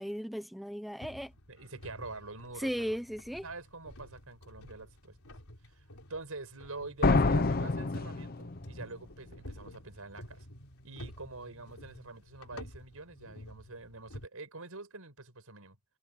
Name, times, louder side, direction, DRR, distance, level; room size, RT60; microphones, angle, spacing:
voice 1, 0.0-1.3 2.6-3.4, equal, ahead, 0.7 m, -36 dB
sound 1, 1.0-14.3, left 1 dB, 85° left, 3.5 m, -50 dB
voice 2, 1.5-3.0 3.4-5.2 5.7-5.8 6.1-10.5 10.8-15.8, right 3 dB, 75° right, 6.5 m, -45 dB
sound 2, 7.0-8.8, left 3 dB, 45° left, 0.8 m, -27 dB
head